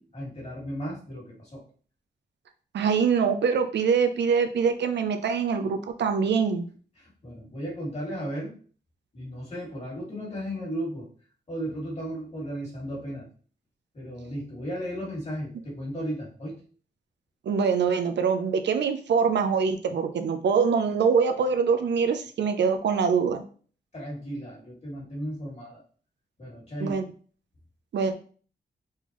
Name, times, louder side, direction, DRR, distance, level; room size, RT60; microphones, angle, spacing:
voice 1, 0.0-1.6 7.0-8.6 9.1-11.1 11.5-13.3 13.9-16.6 23.9-25.8 26.4-27.0, equal, 40° left, -4 dB, 2.3 m, -35 dB
voice 2, 2.7-6.7 17.5-23.4 26.8-27.0 27.9-28.1, right 6 dB, 90° right, 6 dB, 0.6 m, -24 dB
4.4 x 3.8 x 3.0 m, 0.42 s
wide cardioid pair, 135°, 18 cm